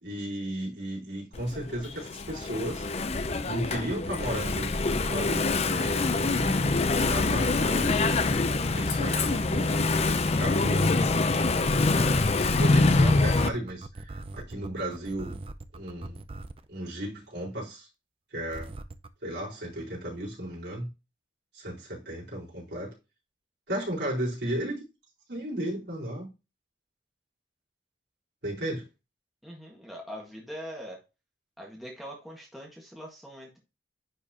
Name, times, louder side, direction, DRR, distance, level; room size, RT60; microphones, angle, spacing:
voice 1, 0.0-2.8 3.4-4.7 5.1-6.8 7.1-8.0 8.7-9.9 10.4-11.1 11.9-15.4 15.7-16.2 16.7-17.9 18.3-18.7 19.2-20.9 21.5-22.9 23.7-24.8 25.3-26.3 28.4-28.9, right 1 dB, 70° right, 4.4 m, -35 dB
Engine / Mechanisms, 1.3-13.5, left 3 dB, 35° left, 0.6 m, -25 dB
sound 1, 2.3-16.7 18.5-19.1, right 2 dB, 30° right, 0.5 m, -40 dB
voice 2, 29.4-31.0 31.6-33.6, equal, ahead, 1.7 m, -42 dB
10.0 x 4.5 x 2.8 m
head